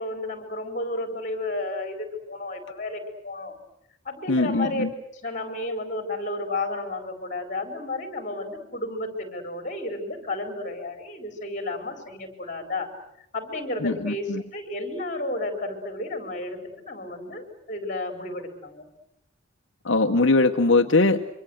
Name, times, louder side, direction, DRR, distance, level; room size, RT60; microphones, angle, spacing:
voice 1, 0.0-3.5 4.0-4.9 5.2-12.9 13.3-16.6 16.9-18.8, left 2 dB, 40° left, 7 dB, 4.1 m, -32 dB
voice 2, 4.3-4.9 13.8-14.4 19.8-21.2, left 2 dB, 70° left, 5 dB, 1.0 m, -21 dB
26.5 x 24.0 x 7.9 m, 0.77 s
head